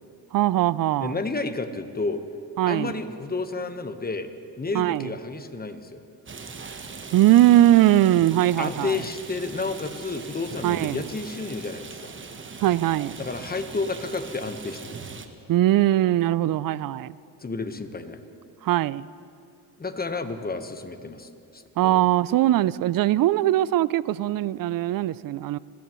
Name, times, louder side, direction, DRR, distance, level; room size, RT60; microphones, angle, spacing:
voice 1, 0.3-1.2 2.6-2.9 4.7-5.1 7.1-9.0 10.6-11.0 12.6-13.1 15.5-17.2 18.6-19.1 21.8-25.6, right 14 dB, 55° right, 0.5 m, -20 dB
voice 2, 1.0-2.2 2.7-4.3 4.6-6.0 8.6-12.1 13.2-15.0 17.4-18.2 19.8-22.1, left 3 dB, 20° left, 1.2 m, -31 dB
Rain, 6.3-15.3, right 4 dB, 30° right, 1.1 m, -40 dB
26.5 x 14.5 x 3.1 m
supercardioid pair, 65°, 42 cm